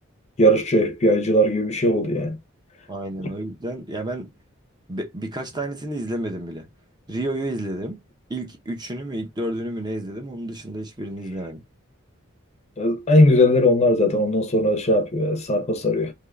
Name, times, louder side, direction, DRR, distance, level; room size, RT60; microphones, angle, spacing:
voice 1, 0.4-2.4 12.8-16.1, left 1 dB, 30° left, 0.6 m, -19 dB
voice 2, 2.9-4.3 4.9-6.7 7.1-8.0 8.3-11.6, right 1 dB, 20° right, 0.6 m, -30 dB
3.5 x 2.6 x 2.2 m
head